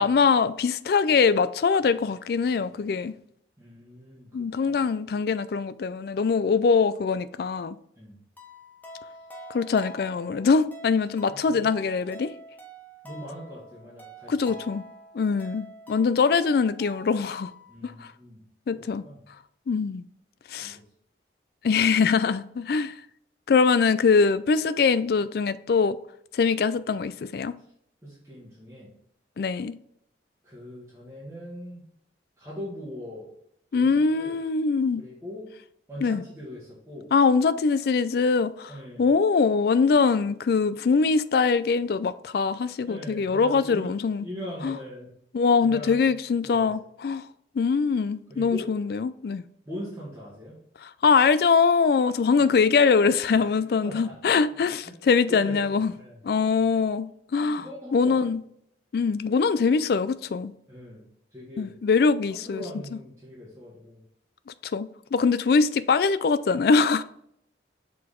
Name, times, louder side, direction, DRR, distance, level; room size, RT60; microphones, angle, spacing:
voice 1, 0.0-3.1 4.3-7.8 9.5-12.3 14.3-14.8 15.1-17.5 17.8-18.1 18.7-19.0 19.7-20.0 20.5-20.8 21.6-22.9 23.5-26.0 26.3-27.5 29.4-29.8 33.7-35.0 36.0-36.2 37.1-44.3 44.6-44.8 45.3-47.3 47.6-49.4 50.8-55.9 56.2-58.4 58.9-60.5 61.6-62.6 64.7-67.0, left 5 dB, 55° left, 0.3 m, -23 dB
voice 2, 3.6-4.8 8.0-8.1 11.3-11.7 13.0-14.5 17.7-18.4 18.7-19.2 20.6-20.8 28.0-28.9 30.4-31.8 32.4-33.3 33.7-34.3 35.0-35.5 35.9-37.1 38.7-39.1 42.9-43.9 44.2-45.1 45.6-46.0 46.4-46.7 48.3-48.7 49.7-50.6 52.4-52.5 53.3-53.5 53.8-54.2 54.8-54.9 55.3-56.2 57.4-58.2 60.7-61.0 61.3-61.7 62.3-64.0, left 1 dB, 15° right, 1.8 m, -41 dB
sound 1, 8.4-17.7, right 1 dB, 10° left, 0.8 m, -46 dB
6.1 x 4.7 x 3.7 m
head